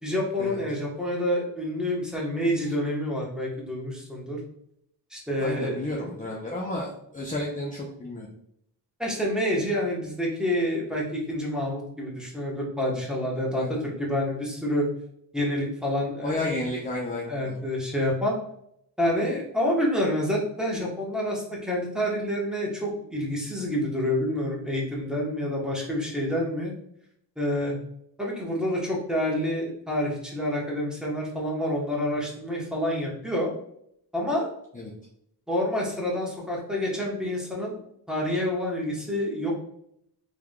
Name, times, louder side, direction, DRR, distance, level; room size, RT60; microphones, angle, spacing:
voice 1, 0.0-4.4 5.1-5.8 9.0-14.9 15.3-16.5 17.3-18.3 19.0-26.7 27.4-27.7 28.2-33.5 34.1-34.5 35.5-37.8 38.1-39.7, left 1 dB, ahead, -4 dB, 1.2 m, -28 dB
voice 2, 5.4-8.3 13.6-13.8 16.2-17.6 34.7-34.9, left 1 dB, 20° left, -3 dB, 0.7 m, -32 dB
3.5 x 3.3 x 2.3 m, 0.73 s
cardioid pair, 85°, 42 cm